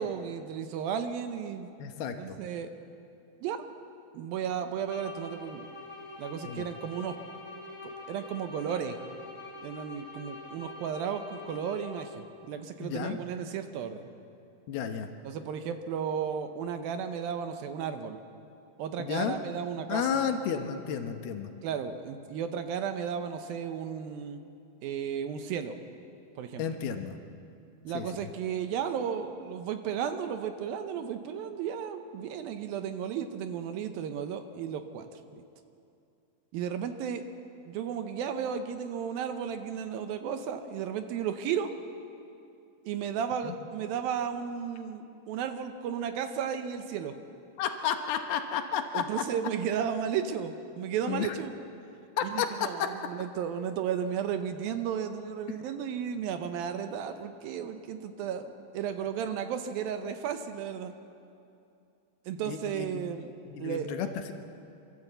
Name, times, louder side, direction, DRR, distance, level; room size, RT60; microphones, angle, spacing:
voice 1, 0.0-1.7 2.2-2.7 3.4-3.6 4.1-5.6 6.2-7.2 7.8-9.0 9.6-14.1 15.2-18.2 18.8-20.2 21.6-24.5 24.8-25.8 26.4-26.6 27.8-35.2 36.5-37.2 37.7-41.7 42.9-47.2 48.9-51.5 52.2-60.9 62.3-63.3 63.6-63.9, right 8 dB, 75° right, 8 dB, 2.5 m, -34 dB
voice 2, 1.8-2.4 6.4-6.6 12.8-13.2 14.7-15.1 19.0-19.4 19.9-21.5 26.6-27.2 27.9-28.3 43.4-43.6 47.6-49.0 51.1-51.3 52.2-52.9 62.4-63.1 63.5-64.3, left 8 dB, 75° left, 6 dB, 2.9 m, -32 dB
sound 1, 4.8-12.4, left 2 dB, 10° left, 3.7 m, -45 dB
26.5 x 13.5 x 7.9 m, 2.6 s
omnidirectional pair, 4.5 m